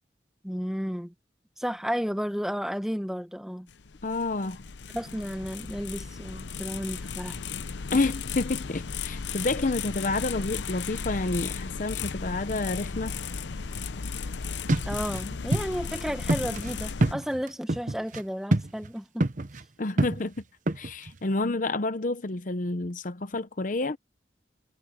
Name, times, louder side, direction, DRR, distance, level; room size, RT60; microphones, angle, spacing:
voice 1, 0.4-1.1 1.6-3.7 4.9-7.4 7.9-8.0 14.9-19.2, equal, 5° right, 1.4 m, -33 dB
sound 1, 3.7-17.1, left 5 dB, 90° left, 0.7 m, -35 dB
voice 2, 4.0-4.6 7.9-13.2 19.8-20.4 20.8-24.0, left 2 dB, 45° left, 0.8 m, -29 dB
sound 2, 14.7-15.2 15.5-15.6 15.9-16.0 16.3-18.2 18.5-18.9 19.2-19.6 20.0-21.2, right 1 dB, 45° right, 1.0 m, -26 dB
head